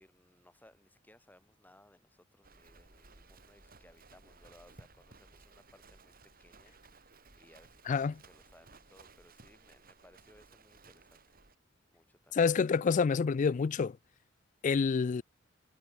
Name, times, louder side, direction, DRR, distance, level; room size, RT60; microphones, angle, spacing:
voice 1, 0.0-11.2 11.9-12.4, left 1 dB, 10° left, 3.6 m, -63 dB
Livestock farm animals working animals, 2.4-11.6, right 3 dB, 50° right, 4.7 m, -59 dB
voice 2, 12.3-14.0 14.6-15.2, left 5 dB, 40° left, 0.3 m, -28 dB
head